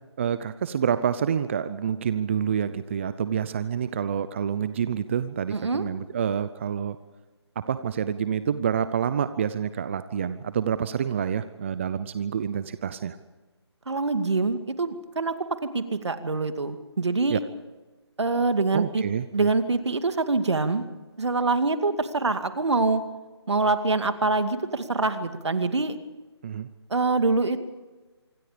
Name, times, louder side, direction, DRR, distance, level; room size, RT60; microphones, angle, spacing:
voice 1, 0.2-7.0 7.7-13.2 17.3-17.4 18.7-19.5 26.4-26.7, right 8 dB, 25° right, 13 dB, 0.6 m, -27 dB
voice 2, 5.5-5.8 13.9-15.3 15.6-17.4 18.2-19.0 19.3-20.8 21.2-23.0 23.5-26.0 26.9-27.7, right 3 dB, 75° right, 9 dB, 2.4 m, -25 dB
26.0 x 23.5 x 5.1 m, 1.2 s
figure-of-eight pair, 160°, 15 cm